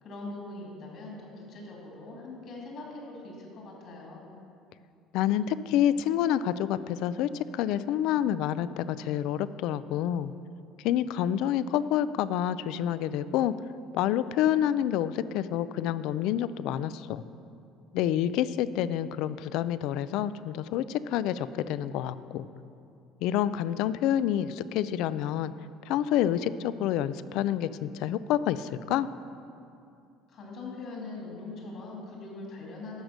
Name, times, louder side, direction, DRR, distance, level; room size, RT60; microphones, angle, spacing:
voice 1, 0.0-4.2 30.3-33.0, left 2 dB, 45° left, -2 dB, 2.5 m, -42 dB
voice 2, 5.1-10.3 10.8-13.5 13.9-17.2 17.9-22.5 23.2-25.5 25.9-29.1, left 11 dB, 65° left, 15 dB, 0.3 m, -28 dB
12.0 x 5.1 x 6.6 m, 2.5 s
cardioid pair, 160°, 0 cm